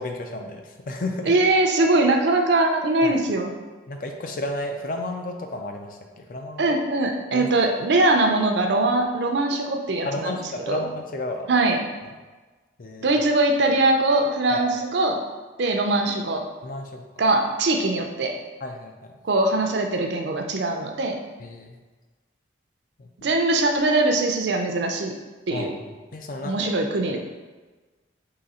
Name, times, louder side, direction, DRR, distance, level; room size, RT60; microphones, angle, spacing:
voice 1, 0.0-1.3 3.0-3.2 3.9-6.8 7.3-7.5 10.0-11.5 12.8-13.2 14.5-14.6 16.6-17.0 18.6-19.1 21.4-21.8 23.0-23.1 25.5-25.8 26.1-26.7 27.1-27.2, left 2 dB, 45° left, 4 dB, 0.4 m, -32 dB
voice 2, 1.3-3.5 6.6-10.3 10.7-10.8 11.5-11.8 13.0-15.2 15.6-16.4 17.2-18.3 19.2-21.2 23.2-25.1 25.5-25.7 26.4-27.2, right 2 dB, 70° right, 4 dB, 0.5 m, -21 dB
3.9 x 2.8 x 4.2 m, 1.3 s
head